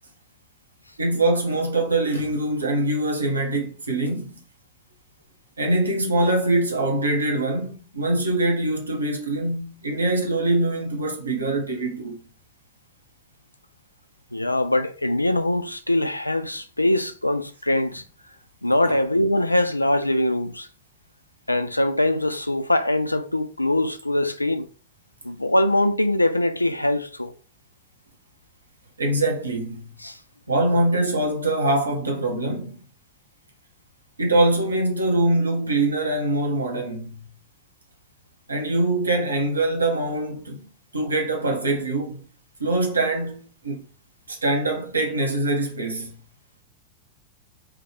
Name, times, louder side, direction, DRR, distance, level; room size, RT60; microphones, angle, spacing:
voice 1, 1.0-4.3 5.6-12.2 18.8-19.0 29.0-29.9 30.5-32.7 34.2-37.2 38.5-40.7 40.9-42.2 42.6-43.8 44.3-46.1, right 2 dB, 80° right, 0.8 m, -23 dB
voice 2, 14.3-18.0 18.6-20.7 21.5-24.7 25.2-27.3 30.0-30.1, left 1 dB, 85° left, 0.3 m, -22 dB
4.7 x 2.3 x 3.2 m
figure-of-eight pair, 90°, 0 cm